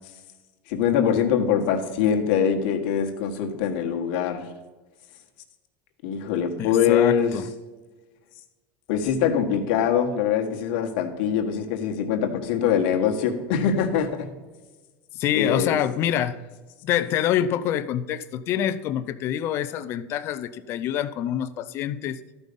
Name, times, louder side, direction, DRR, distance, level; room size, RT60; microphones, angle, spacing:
voice 1, 0.7-4.5 6.0-7.4 8.9-14.3 15.3-15.8, left 8 dB, 70° left, 4 dB, 1.4 m, -23 dB
voice 2, 6.6-7.5 15.2-16.4 16.8-22.2, left 10 dB, 45° left, 13 dB, 0.5 m, -26 dB
13.0 x 5.4 x 5.3 m, 1.3 s
supercardioid pair, 130°, 6 cm